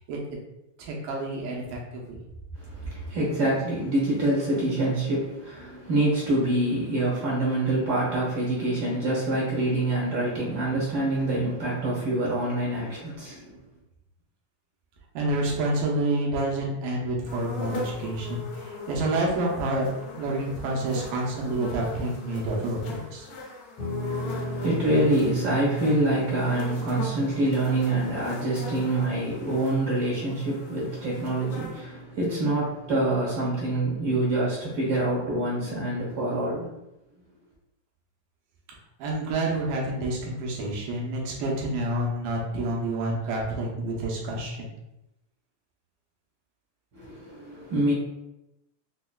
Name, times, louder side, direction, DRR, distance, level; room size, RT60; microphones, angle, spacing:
voice 1, 0.8-2.2 15.1-23.3 39.0-44.7, right 1 dB, 85° right, -2 dB, 2.4 m, -28 dB
voice 2, 2.8-13.5 24.1-36.7 46.9-47.9, right 1 dB, 65° right, -6 dB, 1.1 m, -26 dB
sound 1, 17.2-31.8, left 3 dB, 75° left, 1.5 m, -39 dB
Guitar, 23.8-33.1, equal, 90° left, 1.2 m, -38 dB
5.9 x 2.1 x 2.3 m, 0.90 s
omnidirectional pair, 3.6 m